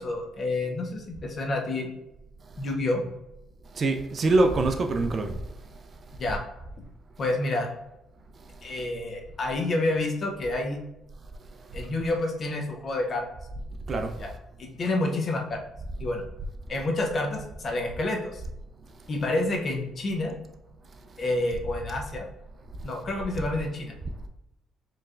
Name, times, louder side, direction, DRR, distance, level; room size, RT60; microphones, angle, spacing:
voice 1, 0.0-1.9 2.6-3.0 6.2-6.4 7.2-7.7 8.6-10.8 11.7-13.3 14.2-14.3 14.6-15.6 16.0-16.2 16.7-18.4 19.1-20.4 21.2-22.2 22.8-23.9, left 2 dB, 40° left, 0.6 m, -28 dB
voice 2, 3.7-5.4 13.9-14.2, right 2 dB, 35° right, 0.4 m, -24 dB
4.5 x 3.1 x 2.4 m
cardioid pair, 135°, 0 cm